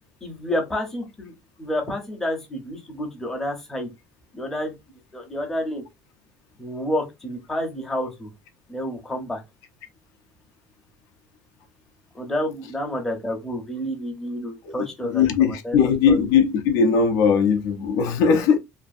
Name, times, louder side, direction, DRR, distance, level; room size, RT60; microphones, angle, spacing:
voice 1, 0.2-1.3 1.6-3.9 4.3-4.7 5.1-5.8 6.6-8.3 8.7-9.4 12.1-16.2, left 1 dB, 5° left, 0.6 m, -29 dB
voice 2, 14.6-18.6, left 6 dB, 65° left, 0.4 m, -19 dB
2.6 x 2.4 x 2.4 m
cardioid pair, 170°, 6 cm